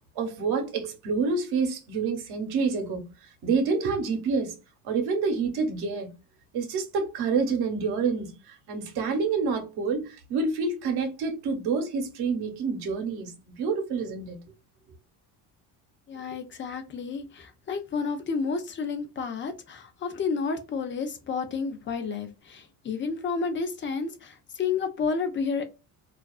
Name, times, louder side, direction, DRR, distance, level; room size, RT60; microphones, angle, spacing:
voice 1, 0.2-3.0 3.4-4.5 4.8-6.1 6.5-14.4, right 4 dB, 60° right, 0.9 m, -28 dB
voice 2, 16.1-25.6, left 5 dB, 30° left, 0.4 m, -31 dB
2.5 x 2.3 x 2.2 m
cardioid pair, 130°, 43 cm